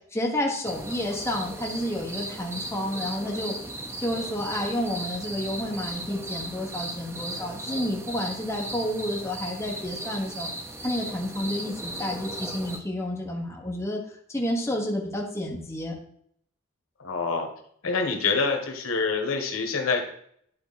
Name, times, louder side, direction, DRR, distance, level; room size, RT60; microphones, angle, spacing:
voice 1, 0.1-3.5 4.0-10.5 10.8-14.0 14.3-15.9, left 1 dB, 15° left, -1 dB, 1.3 m, -30 dB
sound 1, 0.6-12.8, right 1 dB, 10° right, 0.6 m, -37 dB
voice 2, 17.0-17.5 17.8-20.0, left 4 dB, 90° left, 3 dB, 1.4 m, -26 dB
11.0 x 3.8 x 4.1 m, 0.65 s
head